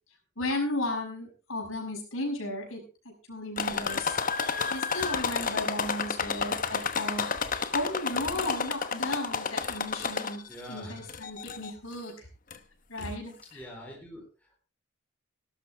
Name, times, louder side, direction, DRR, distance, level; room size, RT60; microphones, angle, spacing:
voice 1, 0.4-12.3 12.9-13.6, left 1 dB, 75° left, 1 dB, 6.2 m, -35 dB
sound 1, 3.6-10.6 11.1-11.7 12.5-12.6 13.0-13.1, left 5 dB, 40° left, 1.0 m, -31 dB
voice 2, 10.5-11.0 13.5-14.6, equal, 5° left, 0 dB, 4.0 m, -44 dB
17.5 x 12.5 x 3.4 m, 0.33 s
head